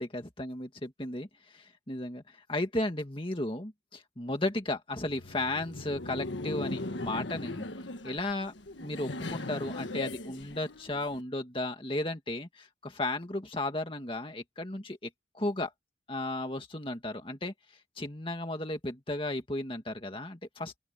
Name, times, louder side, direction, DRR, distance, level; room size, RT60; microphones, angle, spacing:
voice 1, 0.0-7.6 8.0-8.5 8.8-15.1 15.3-15.7 16.1-17.5 18.0-20.8, left 2 dB, 30° left, 2.1 m, -34 dB
Laughter, 4.9-11.2, left 2 dB, 80° left, 1.6 m, -39 dB
open air
head